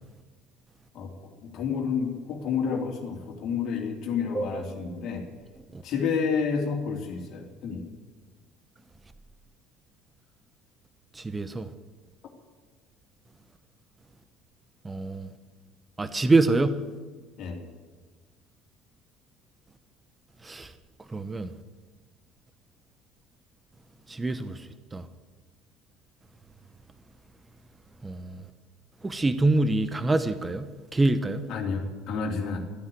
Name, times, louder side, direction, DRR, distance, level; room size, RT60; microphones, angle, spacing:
voice 1, 1.4-5.2 5.8-7.9 17.4-17.6 31.5-32.6, left 6 dB, 50° left, 1 dB, 3.2 m, -30 dB
voice 2, 11.2-11.7 14.8-15.3 16.0-16.8 20.4-20.7 21.1-21.5 24.1-24.6 24.9-25.0 28.0-28.4 29.0-31.5, right 2 dB, 20° right, 12 dB, 1.0 m, -25 dB
13.5 x 9.7 x 9.4 m, 1.4 s
hypercardioid pair, 65°, 0 cm